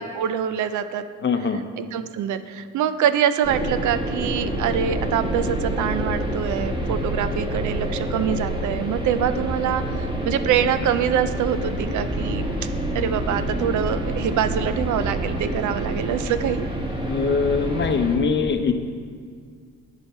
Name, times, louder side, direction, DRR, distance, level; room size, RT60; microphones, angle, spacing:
voice 1, 0.0-1.0 1.8-12.5 12.9-16.7, right 9 dB, 75° right, 11 dB, 0.5 m, -25 dB
voice 2, 1.2-1.6 17.1-18.7, left 5 dB, 40° left, 7 dB, 0.7 m, -22 dB
sound 1, 3.4-18.2, right 1 dB, 15° right, 1.4 m, -27 dB
9.1 x 6.8 x 4.3 m, 2.1 s
cardioid pair, 90°, 30 cm